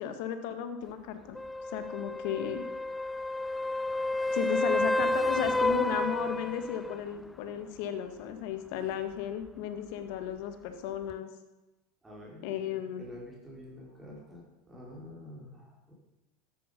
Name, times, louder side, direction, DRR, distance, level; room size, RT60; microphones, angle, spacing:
voice 1, 0.0-1.4 1.7-2.6 4.3-11.3 12.4-13.1, left 8 dB, 65° left, 8 dB, 1.9 m, -34 dB
sound 1, 1.3-7.0 11.1-11.2, left 2 dB, 10° left, 0.4 m, -30 dB
voice 2, 12.0-15.9, left 1 dB, 15° right, -3 dB, 5.2 m, -48 dB
13.5 x 10.5 x 5.5 m, 1.0 s
hypercardioid pair, 100°, 0 cm